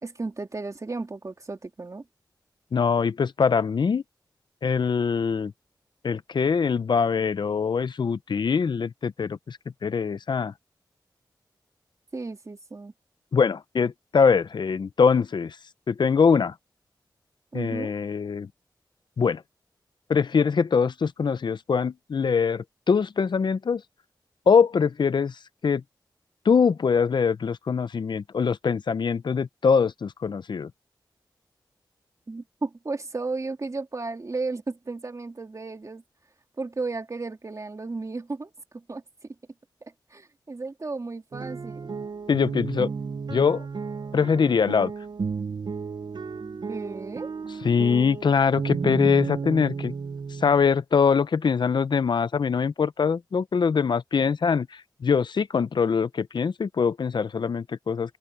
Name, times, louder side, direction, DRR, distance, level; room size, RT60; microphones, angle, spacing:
voice 1, 0.0-2.0 12.1-12.9 17.5-17.9 32.3-36.0 36.6-39.0 40.1-41.9 46.7-47.3, right 3 dB, 45° right, 3.1 m, -34 dB
voice 2, 2.7-4.0 4.6-5.5 6.0-10.5 13.3-15.6 15.9-16.5 17.5-18.5 19.2-19.4 20.1-23.8 24.5-25.4 25.6-25.8 26.4-30.7 42.3-42.9 43.3-43.7 44.1-44.9 47.6-49.9 50.3-58.2, left 6 dB, 70° left, 0.6 m, -23 dB
sound 1, 41.3-50.7, right 5 dB, 70° right, 0.8 m, -33 dB
open air
wide cardioid pair, 80°, 8 cm